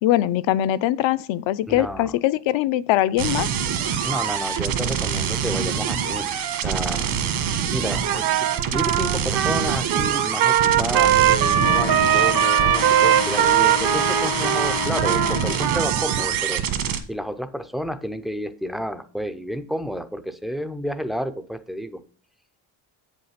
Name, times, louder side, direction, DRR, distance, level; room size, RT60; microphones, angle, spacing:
voice 1, 0.0-3.5, left 13 dB, 70° left, 0.6 m, -22 dB
voice 2, 1.7-2.1 4.0-7.1 7.7-22.0, equal, ahead, 0.3 m, -31 dB
sound 1, 3.2-17.0, right 8 dB, 75° right, 1.5 m, -25 dB
Trumpet, 8.0-16.3, right 11 dB, 50° right, 0.6 m, -21 dB
sound 2, 11.5-15.6, left 8 dB, 85° left, 1.4 m, -30 dB
8.5 x 5.5 x 5.7 m
cardioid pair, 155°, 48 cm